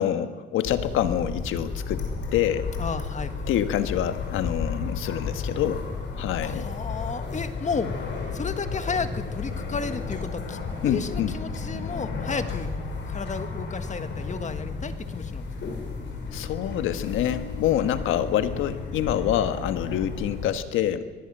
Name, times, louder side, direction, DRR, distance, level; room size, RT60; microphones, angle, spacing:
voice 1, 0.0-2.7 3.5-5.8 6.2-6.7 10.8-11.3 16.3-21.0, left 10 dB, 90° left, 10 dB, 1.4 m, -26 dB
sound 1, 0.6-20.5, left 4 dB, 65° left, 6.2 m, -33 dB
voice 2, 2.8-3.6 6.4-7.9 8.3-12.7 13.1-15.5, left 5 dB, 35° left, 10 dB, 1.7 m, -33 dB
22.5 x 18.5 x 7.8 m, 1.3 s
cardioid pair, 90°, 20 cm